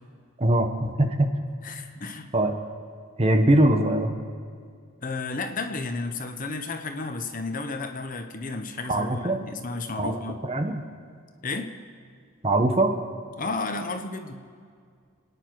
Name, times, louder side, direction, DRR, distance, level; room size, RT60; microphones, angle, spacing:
voice 1, 0.4-1.3 2.3-2.5 3.2-4.1 8.9-9.4 10.0-10.8 12.4-12.9, right 1 dB, 25° right, 5 dB, 1.0 m, -22 dB
voice 2, 1.6-2.3 5.0-10.4 11.4-11.7 13.4-14.4, left 3 dB, 35° left, 6 dB, 1.0 m, -32 dB
28.0 x 9.7 x 4.7 m, 2.1 s
head